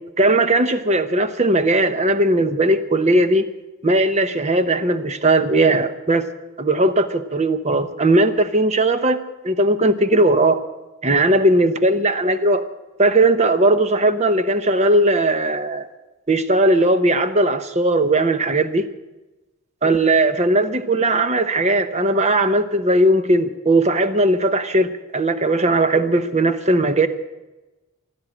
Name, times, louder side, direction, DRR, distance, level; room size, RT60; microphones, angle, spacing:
voice 1, 0.2-3.5 3.8-6.3 6.6-9.2 9.4-10.6 11.0-12.6 13.0-15.9 16.3-18.9 19.8-27.1, right 2 dB, 30° right, 0.8 m, -18 dB
16.0 x 11.5 x 7.5 m
head